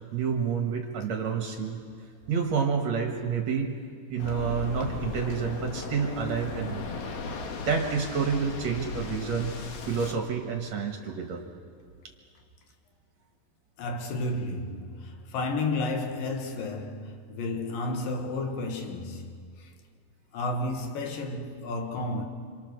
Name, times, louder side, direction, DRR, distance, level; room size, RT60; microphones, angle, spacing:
voice 1, 0.1-1.8 2.3-3.7 4.1-6.9 7.7-9.6 9.9-11.4, right 6 dB, 55° right, 2.6 m, -29 dB
Waves surf, 4.2-10.1, left 4 dB, 90° left, 3.8 m, -37 dB
voice 2, 13.8-19.3 19.6-19.7 20.3-22.2, left 2 dB, 70° left, 3.3 m, -32 dB
27.5 x 26.5 x 6.7 m
omnidirectional pair, 4.2 m